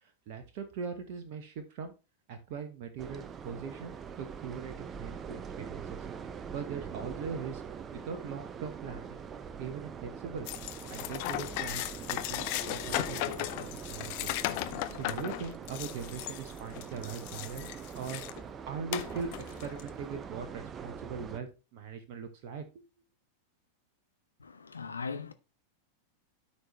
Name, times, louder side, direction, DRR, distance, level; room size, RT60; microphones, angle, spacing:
voice 1, 0.0-1.9 2.3-6.0 6.5-7.6 7.9-9.2 9.6-10.5 10.9-11.8 12.1-14.4 15.0-17.7 17.9-18.2 18.7-22.6, right 6 dB, 45° right, 1.1 m, -40 dB
sound 1, 3.0-21.4, right 7 dB, 25° right, 0.6 m, -43 dB
sound 2, 10.5-18.4 18.9-19.9, left 15 dB, 45° left, 0.6 m, -36 dB
voice 2, 24.4-25.3, left 5 dB, 75° left, 0.8 m, -39 dB
12.5 x 4.3 x 3.2 m
figure-of-eight pair, 90°, 0 cm